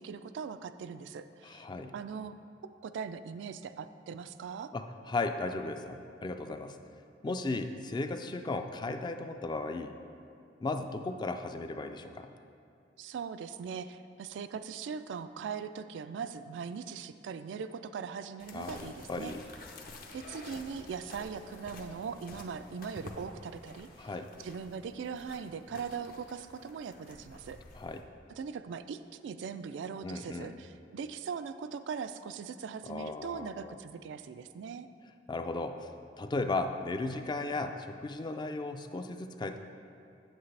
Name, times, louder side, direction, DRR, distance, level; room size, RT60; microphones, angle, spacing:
voice 1, 0.0-1.7 1.9-2.4 2.6-4.7 13.0-19.3 20.1-24.1 24.4-27.6 28.3-34.9, right 6 dB, 85° right, 11 dB, 0.3 m, -40 dB
voice 2, 1.4-1.9 4.7-6.8 7.2-10.0 10.6-12.3 18.5-19.4 24.0-24.3 27.7-28.0 30.0-30.6 32.8-33.8 35.3-35.9 36.2-39.6, left 2 dB, 25° left, 7 dB, 0.3 m, -36 dB
sound 1, 18.4-28.0, left 2 dB, 50° left, 0.7 m, -50 dB
8.1 x 7.5 x 3.3 m, 2.5 s
head